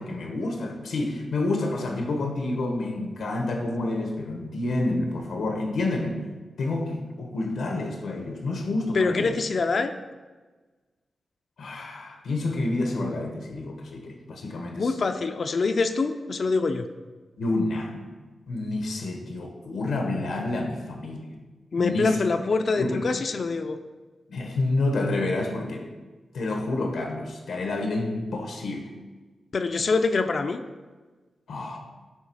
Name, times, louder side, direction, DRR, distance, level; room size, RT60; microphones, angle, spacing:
voice 1, 0.0-6.2 6.6-9.4 11.6-14.9 17.4-18.0 18.5-21.3 21.8-22.2 22.7-23.0 24.3-25.9 26.3-28.9 31.5-31.8, left 2 dB, 90° left, 2 dB, 1.1 m, -29 dB
voice 2, 8.9-9.9 14.8-16.9 21.7-23.8 29.5-30.6, left 4 dB, 45° left, 8 dB, 0.4 m, -25 dB
9.6 x 3.4 x 6.1 m, 1.3 s
wide cardioid pair, 170°, 0 cm